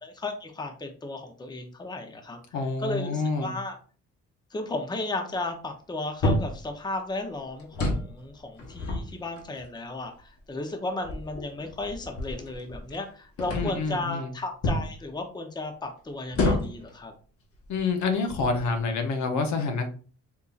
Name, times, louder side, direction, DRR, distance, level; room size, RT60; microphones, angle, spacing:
voice 1, 0.0-3.8 4.5-17.1, left 2 dB, 15° left, 4 dB, 0.6 m, -34 dB
voice 2, 2.5-3.5 13.5-14.3 17.7-19.9, left 4 dB, 70° left, 4 dB, 0.8 m, -27 dB
sound 1, 6.2-6.6 7.6-8.1 8.6-9.7 10.4-10.5 11.0-13.0 13.4-13.9 14.6-14.9 16.3-16.9 17.6-17.8 18.3-18.8, left 2 dB, 50° left, 1.0 m, -29 dB
3.8 x 2.7 x 2.4 m, 0.39 s
cardioid pair, 90°, 30 cm